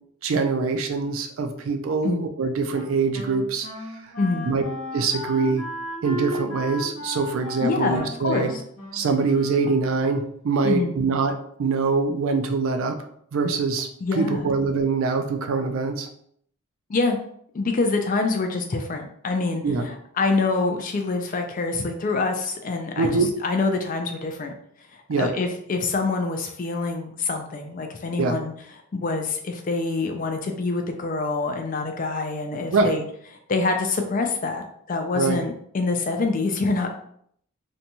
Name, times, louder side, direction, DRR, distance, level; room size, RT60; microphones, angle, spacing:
voice 1, 0.2-3.7 4.5-4.6 4.9-5.6 6.0-8.5 8.9-13.0 13.3-13.9 14.2-16.1 19.6-19.8 23.0-23.3 25.1-25.3 28.2-28.4 32.7-32.9 35.1-35.4, right 4 dB, 70° right, 6 dB, 0.4 m, -24 dB
Wind instrument woodwind instrument, 2.7-10.1, equal, 80° left, 0.9 m, -35 dB
voice 2, 4.2-4.5 7.6-8.6 10.6-10.9 14.0-14.5 16.9-17.2 17.5-24.5 25.2-28.5 28.9-33.0 33.5-34.6 34.9-36.9, left 3 dB, 35° left, 4 dB, 0.3 m, -26 dB
2.6 x 2.2 x 2.8 m, 0.66 s
head